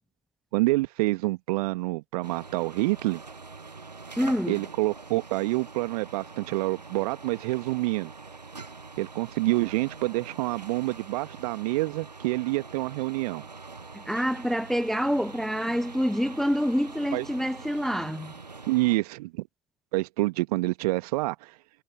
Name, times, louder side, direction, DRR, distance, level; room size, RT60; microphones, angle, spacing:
voice 1, 0.5-3.2 4.5-8.1 9.0-13.5 17.1-17.3 18.7-19.4 19.9-21.5, right 21 dB, 70° right, 1.8 m, -27 dB
sound 1, 2.2-19.0, right 4 dB, 90° right, 1.4 m, -44 dB
voice 2, 4.2-4.6 13.9-18.3, equal, ahead, 0.6 m, -27 dB
figure-of-eight pair, 55°, 21 cm